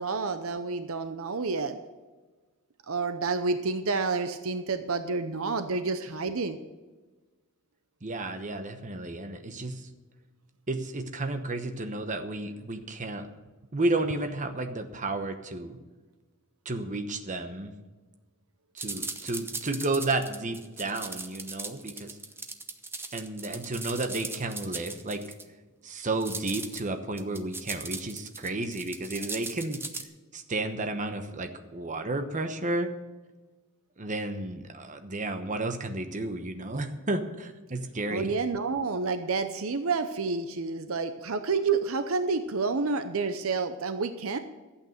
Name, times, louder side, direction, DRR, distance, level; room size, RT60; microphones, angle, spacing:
voice 1, 0.0-1.8 2.9-6.6 38.1-44.4, right 4 dB, 65° right, 9 dB, 0.7 m, -29 dB
voice 2, 8.0-9.9 10.7-13.3 13.7-15.8 16.6-17.7 18.7-22.2 23.1-25.2 25.8-29.8 30.3-32.9 34.0-38.3, right 2 dB, 35° right, 7 dB, 1.0 m, -32 dB
sound 1, 18.8-25.4 26.2-26.8 27.2-30.0, right 3 dB, 10° right, 0.7 m, -38 dB
12.5 x 8.6 x 6.5 m, 1.3 s
head